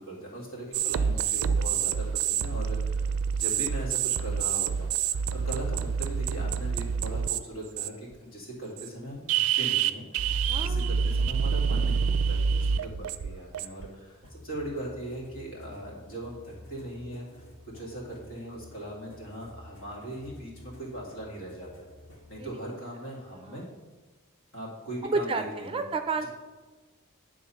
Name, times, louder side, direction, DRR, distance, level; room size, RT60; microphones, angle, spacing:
voice 1, 0.0-17.4 17.7-21.7 22.3-23.7 24.5-25.5 25.7-25.8, right 1 dB, 65° left, -4 dB, 2.4 m, -39 dB
sound 1, 0.7-7.4 7.8-8.1 8.8-8.9 9.3-13.9, right 7 dB, 85° right, 0.4 m, -27 dB
voice 2, 10.5-10.9 22.4-22.5 23.3-23.7 25.0-26.3, right 3 dB, 25° right, 7 dB, 0.4 m, -31 dB
sound 2, 14.2-22.3, left 1 dB, 85° left, 2.0 m, -51 dB
9.9 x 3.7 x 5.6 m, 1.3 s
head